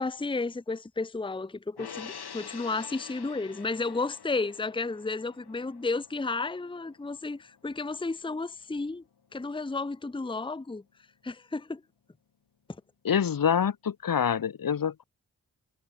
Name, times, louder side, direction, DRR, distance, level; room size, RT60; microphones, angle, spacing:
voice 1, 0.0-9.0 9.3-10.8 11.2-11.8, left 3 dB, 15° left, 0.8 m, -32 dB
Gong, 1.8-8.4 8.7-8.9, left 7 dB, 85° left, 6.6 m, -47 dB
voice 2, 13.0-15.0, left 8 dB, 60° left, 1.1 m, -26 dB
cardioid pair, 40°, 38 cm